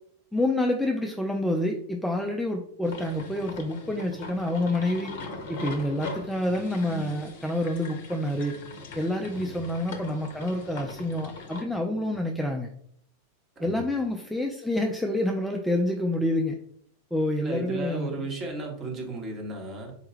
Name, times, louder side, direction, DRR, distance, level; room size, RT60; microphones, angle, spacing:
voice 1, 0.3-5.1 5.5-8.6 8.9-12.7 13.6-16.6 17.1-18.2, left 1 dB, ahead, 1 dB, 0.3 m, -28 dB
sound 1, 2.8-11.6, left 2 dB, 50° left, 0.6 m, -41 dB
voice 2, 17.4-20.0, right 2 dB, 25° right, 1 dB, 1.0 m, -35 dB
4.0 x 2.2 x 3.1 m, 0.66 s
figure-of-eight pair, 90°, 0 cm